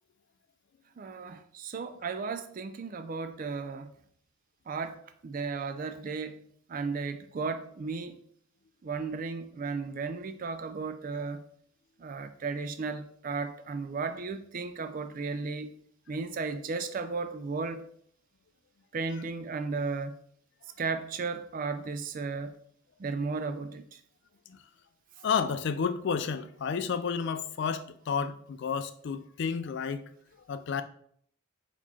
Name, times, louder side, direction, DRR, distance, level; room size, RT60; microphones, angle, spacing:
voice 1, 1.0-3.9 4.7-8.2 8.8-11.4 12.0-15.7 16.1-17.9 18.9-20.1 20.8-22.6 23.0-24.0, right 4 dB, 40° right, 0.3 m, -35 dB
voice 2, 25.2-30.0 30.5-30.8, left 6 dB, 55° left, 0.3 m, -31 dB
4.2 x 3.0 x 4.1 m
head